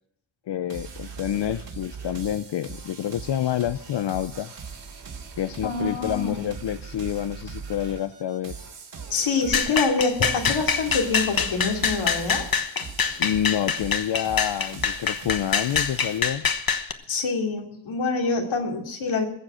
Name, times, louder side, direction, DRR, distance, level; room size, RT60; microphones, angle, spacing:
voice 1, 0.5-4.5 5.4-8.6 13.2-16.5, left 10 dB, 65° left, 13 dB, 0.6 m, -28 dB
sound 1, 0.7-16.2, right 5 dB, 65° right, 3.5 m, -40 dB
voice 2, 5.6-6.4 9.1-12.4 17.1-19.2, left 4 dB, 85° left, 2 dB, 3.0 m, -26 dB
sound 2, 9.5-16.9, left 6 dB, 50° left, 1.2 m, -25 dB
21.5 x 7.6 x 7.6 m, 0.74 s
wide cardioid pair, 145°, 46 cm